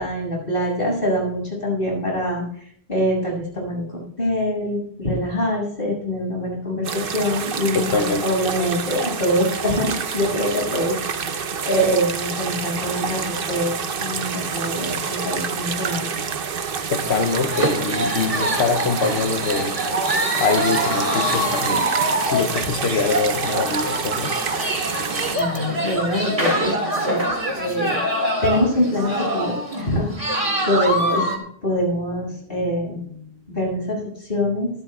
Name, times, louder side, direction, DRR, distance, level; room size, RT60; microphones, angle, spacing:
voice 1, 0.0-2.4 2.9-13.7 14.0-16.1 25.3-26.7 27.1-27.2 27.6-31.3 31.6-33.2 33.5-34.7, equal, 60° left, -2 dB, 7.1 m, -24 dB
sound 1, 6.8-25.4, right 6 dB, 60° right, 1.0 m, -28 dB
voice 2, 7.7-8.2 16.9-19.8 20.4-21.9 22.3-24.3, left 5 dB, 90° left, 7 dB, 1.1 m, -24 dB
sound 2, 17.0-31.4, right 1 dB, 35° right, 2.2 m, -25 dB
25.0 x 12.5 x 2.4 m, 0.63 s
omnidirectional pair, 1.1 m